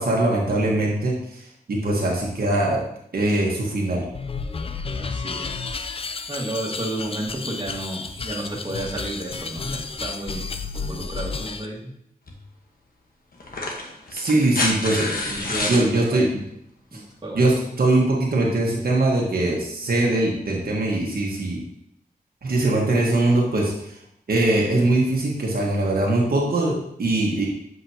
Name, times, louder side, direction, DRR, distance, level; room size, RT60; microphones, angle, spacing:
voice 1, 0.0-1.4 1.7-2.8 3.1-4.0 14.1-15.1 15.6-16.3 16.9-17.0 17.3-21.6 22.4-24.0 24.3-27.5, right 2 dB, 70° right, -2 dB, 1.4 m, -21 dB
sound 1, 4.1-11.7, left 4 dB, 35° left, 0.4 m, -32 dB
voice 2, 4.9-5.6 6.3-10.4 10.9-11.8 15.1-16.3 16.9-17.4, right 1 dB, 30° right, -3 dB, 1.7 m, -32 dB
sound 2, 12.3-12.4 13.4-15.9 17.4-17.5, left 2 dB, 70° left, 1.3 m, -27 dB
7.9 x 5.2 x 2.8 m, 0.75 s
wide cardioid pair, 95°, 16 cm